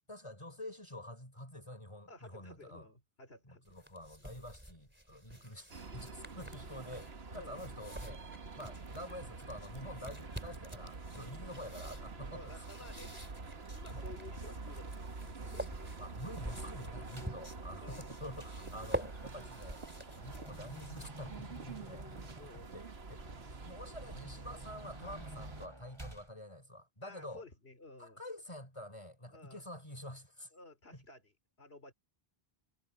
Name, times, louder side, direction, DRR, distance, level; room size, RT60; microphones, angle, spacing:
voice 1, 0.1-2.9 3.4-8.2 8.6-12.7 13.9-14.0 15.4-15.7 16.0-19.8 20.2-22.1 22.7-23.2 23.6-27.4 28.0-30.5, left 1 dB, 30° left, 5.5 m, -48 dB
voice 2, 2.1-3.6 4.2-4.3 5.3-5.5 7.4-7.6 11.2-11.5 12.3-16.0 17.8-18.1 18.6-18.7 22.4-22.8 27.0-28.2 29.3-29.6 30.5-31.3 31.6-31.9, left 2 dB, 80° left, 3.6 m, -54 dB
sound 1, 3.6-21.4, equal, 10° right, 3.4 m, -48 dB
sound 2, 5.7-25.7, right 3 dB, 85° right, 1.9 m, -47 dB
sound 3, 17.1-17.5 17.9-26.3, right 1 dB, 25° right, 3.9 m, -52 dB
omnidirectional pair, 1.0 m